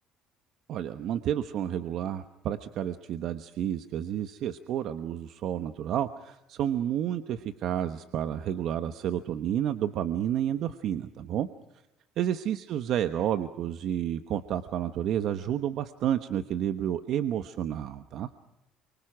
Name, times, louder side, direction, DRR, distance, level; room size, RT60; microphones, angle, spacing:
voice 1, 0.7-11.5 12.2-18.3, right 10 dB, 55° right, 10 dB, 1.2 m, -30 dB
29.5 x 24.5 x 6.2 m, 0.91 s
cardioid pair, 145°, 0 cm